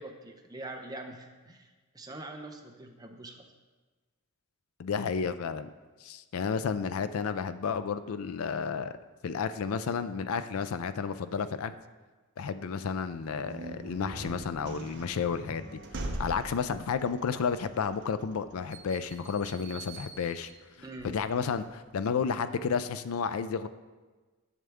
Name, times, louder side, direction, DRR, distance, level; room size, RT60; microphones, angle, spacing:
voice 1, 0.0-3.5 16.7-16.8 20.8-21.1, right 2 dB, 15° right, 3 dB, 0.7 m, -44 dB
voice 2, 4.8-5.7 6.0-8.9 9.2-11.8 12.4-15.7 16.0-20.5 21.0-23.7, left 6 dB, 75° left, 12 dB, 0.4 m, -32 dB
sound 1, 13.0-21.7, right 2 dB, 55° right, 0.8 m, -43 dB
11.0 x 6.5 x 3.5 m, 1.3 s
head